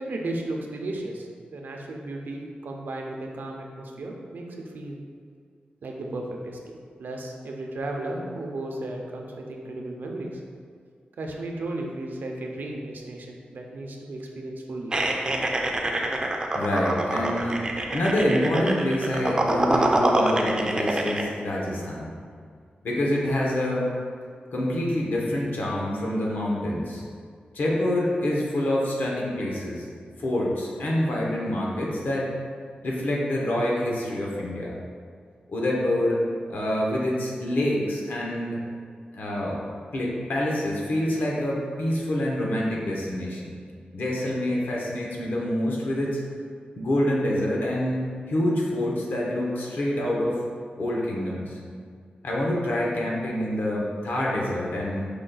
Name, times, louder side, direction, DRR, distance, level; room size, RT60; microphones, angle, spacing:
voice 1, 0.0-5.0 5.8-10.3 11.2-15.0, right 2 dB, 75° right, 1 dB, 0.5 m, -34 dB
sound 1, 14.9-21.2, right 1 dB, 25° right, 0.3 m, -26 dB
voice 2, 16.5-22.1 22.8-23.9 24.5-27.0 27.5-29.9 30.2-32.3 32.8-34.7 35.5-36.2 36.5-38.6 39.1-39.6 39.9-43.6 43.9-46.2 46.8-50.4 50.8-51.6 52.2-55.1, left 1 dB, 75° left, -3 dB, 0.9 m, -26 dB
5.0 x 2.3 x 3.9 m, 2.1 s
wide cardioid pair, 140°, 3 cm